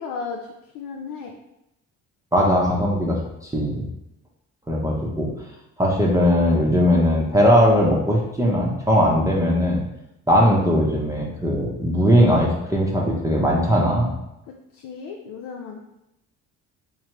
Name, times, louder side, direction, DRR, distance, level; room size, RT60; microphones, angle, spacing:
voice 1, 0.0-1.3 10.3-10.5 14.5-15.8, left 5 dB, 65° left, 1 dB, 0.6 m, -35 dB
voice 2, 2.3-3.2 3.5-3.9 4.7-5.3 5.8-9.8 10.3-14.1, equal, 10° right, -3 dB, 0.8 m, -19 dB
3.6 x 3.1 x 3.0 m, 0.85 s
supercardioid pair, 80°, 36 cm